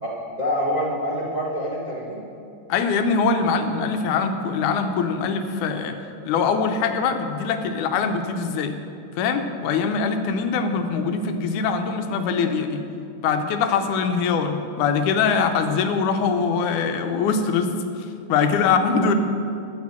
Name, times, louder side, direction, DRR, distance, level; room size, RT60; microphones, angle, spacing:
voice 1, 0.0-2.2 18.3-19.0, equal, 85° right, -5 dB, 0.3 m, -27 dB
voice 2, 2.7-6.0 6.3-8.7 9.2-12.8 13.2-17.7 18.3-19.1, left 5 dB, 80° left, 7 dB, 2.2 m, -22 dB
11.5 x 7.0 x 7.3 m, 2.6 s
omnidirectional pair, 3.6 m